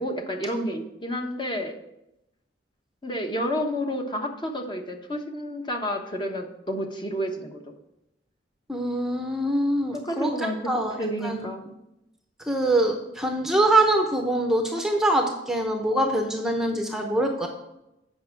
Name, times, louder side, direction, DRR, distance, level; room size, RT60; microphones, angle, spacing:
voice 1, 0.0-1.7 3.0-7.6 9.9-10.7 11.0-11.6, equal, 25° left, 4 dB, 1.1 m, -30 dB
voice 2, 8.7-11.5 12.5-17.5, right 1 dB, 5° right, 3 dB, 0.8 m, -24 dB
8.4 x 5.7 x 5.8 m, 0.87 s
head